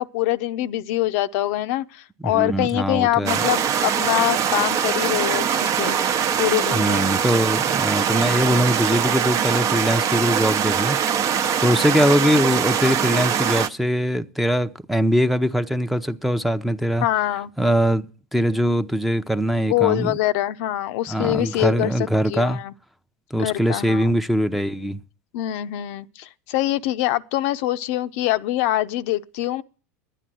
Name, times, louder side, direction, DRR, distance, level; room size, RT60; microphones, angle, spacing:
voice 1, 0.0-6.0 6.4-7.1 17.0-17.5 19.7-21.9 22.3-22.7 23.4-24.2 25.3-29.6, left 15 dB, 65° left, 0.6 m, -24 dB
voice 2, 2.2-3.4 6.7-11.0 11.2-17.1 17.6-18.0 18.3-20.2 21.1-22.6 23.3-25.0, equal, ahead, 0.7 m, -22 dB
sound 1, 3.3-13.7, right 8 dB, 45° right, 0.8 m, -22 dB
10.5 x 10.0 x 7.6 m
hypercardioid pair, 100°, 8 cm